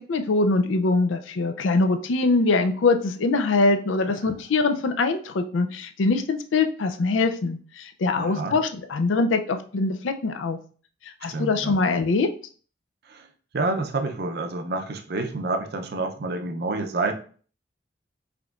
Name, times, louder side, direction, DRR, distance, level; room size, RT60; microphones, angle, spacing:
voice 1, 0.1-10.6 11.2-12.3, left 3 dB, 85° left, 7 dB, 0.5 m, -23 dB
voice 2, 8.2-8.6 11.3-11.8 13.1-13.3 13.5-17.1, right 3 dB, 55° right, 6 dB, 0.5 m, -28 dB
5.0 x 3.0 x 2.4 m, 0.42 s
head